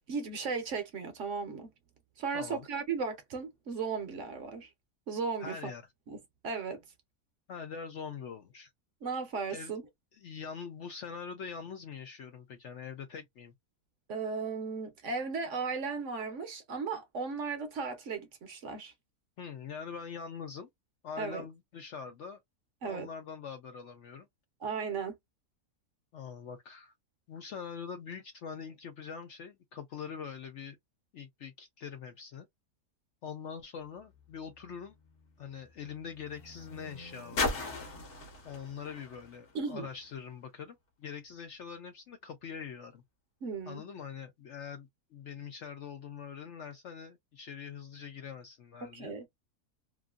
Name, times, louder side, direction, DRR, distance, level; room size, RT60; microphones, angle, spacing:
voice 1, 0.1-1.7 2.2-4.7 5.1-5.7 6.1-6.2 6.4-6.8 9.0-9.8 14.1-18.9 21.2-21.4 22.8-23.1 24.6-25.1 39.5-39.9 43.4-43.8 48.8-49.3, right 5 dB, 60° right, 1.0 m, -36 dB
voice 2, 2.3-2.7 5.4-5.8 7.5-8.7 9.5-9.7 10.1-13.5 19.4-20.7 21.0-22.4 22.8-24.3 26.1-26.9 27.3-30.8 31.1-32.5 33.2-34.9 35.4-37.6 38.4-43.0 43.7-49.3, left 6 dB, 70° left, 0.7 m, -43 dB
sound 1, 33.8-40.3 41.2-41.3, left 3 dB, 55° left, 1.2 m, -40 dB
2.9 x 2.5 x 2.3 m
omnidirectional pair, 1.6 m